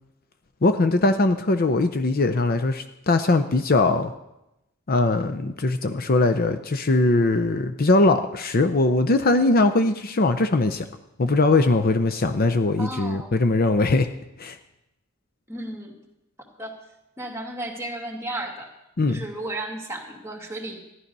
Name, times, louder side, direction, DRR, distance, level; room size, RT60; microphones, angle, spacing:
voice 1, 0.6-4.1 4.9-10.9 11.2-14.1 14.4-14.6 19.0-19.2, left 2 dB, 45° left, 8 dB, 0.6 m, -21 dB
voice 2, 12.8-13.3 15.5-16.0 16.6-16.8 17.2-18.7 19.1-20.8, right 1 dB, 15° right, 1 dB, 2.1 m, -34 dB
14.5 x 11.5 x 5.4 m, 0.91 s
head